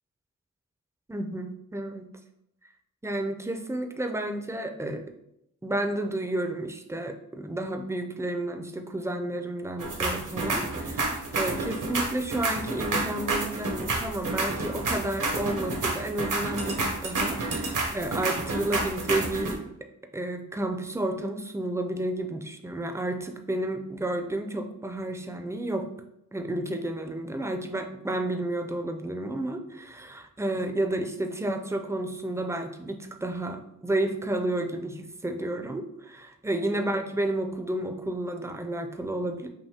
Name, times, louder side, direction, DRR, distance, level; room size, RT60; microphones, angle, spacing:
voice 1, 1.1-2.1 3.0-5.0 5.6-19.6 20.1-25.9 26.3-39.5, right 1 dB, 10° right, 5 dB, 0.5 m, -31 dB
sound 1, 9.8-19.5, right 2 dB, 75° right, 1.2 m, -29 dB
5.4 x 2.6 x 3.5 m, 0.79 s
wide cardioid pair, 70°, 32 cm